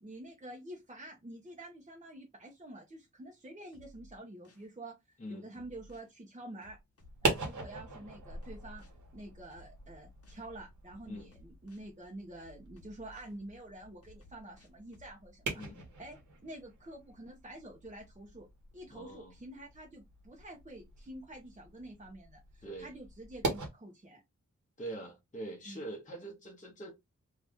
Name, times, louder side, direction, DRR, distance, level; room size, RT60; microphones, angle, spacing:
voice 1, 0.0-6.8 7.2-8.9 9.1-15.6 16.0-18.5 18.7-24.2 25.7-25.8, right 1 dB, 25° right, 0.7 m, -48 dB
sound 1, 3.7-4.7 5.5-6.1 6.6-7.6 8.4-8.9 9.5-10.5 11.3-11.9 12.4-13.4 14.0-15.1, equal, 50° left, 0.9 m, -58 dB
sound 2, 7.0-23.7, right 3 dB, 80° right, 1.1 m, -42 dB
voice 2, 15.5-15.8 18.9-19.3 22.6-22.9 24.8-26.9, right 1 dB, 25° left, 0.8 m, -44 dB
2.7 x 2.4 x 3.4 m
wide cardioid pair, 105°, 29 cm